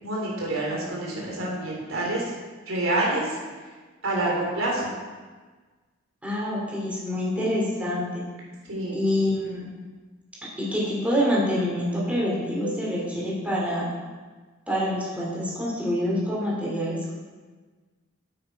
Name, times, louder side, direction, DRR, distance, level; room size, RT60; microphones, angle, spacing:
voice 1, 0.0-2.3 2.7-3.4 4.0-4.9 8.7-9.1, right 2 dB, 85° right, -3 dB, 3.3 m, -27 dB
voice 2, 6.2-8.1 8.9-9.7 10.6-13.9 14.7-17.1, equal, 5° right, -6 dB, 3.2 m, -26 dB
9.1 x 8.8 x 4.7 m, 1.4 s
head